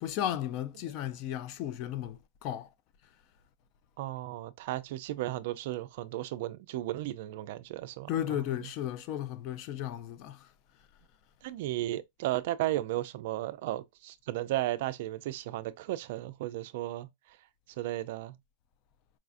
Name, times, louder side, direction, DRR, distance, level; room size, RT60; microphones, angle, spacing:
voice 1, 0.0-2.7 8.1-10.4, left 11 dB, 35° left, 0.3 m, -34 dB
voice 2, 4.0-8.4 11.4-17.1 17.8-18.4, right 15 dB, 55° right, 0.3 m, -34 dB
4.7 x 2.4 x 2.4 m
supercardioid pair, 160°, 0 cm